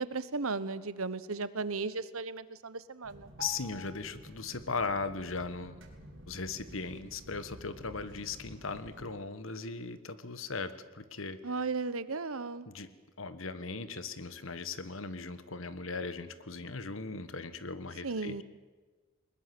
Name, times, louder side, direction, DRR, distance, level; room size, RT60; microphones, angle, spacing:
voice 1, 0.0-3.3 11.4-12.7 18.0-18.4, right 4 dB, 85° right, 15 dB, 1.1 m, -35 dB
sound 1, 3.0-9.1, right 1 dB, 65° right, 4.1 m, -50 dB
voice 2, 3.4-5.8 6.3-11.4 12.6-12.9 13.2-18.4, left 4 dB, 75° left, 13 dB, 1.4 m, -38 dB
21.5 x 20.5 x 7.8 m, 1.3 s
head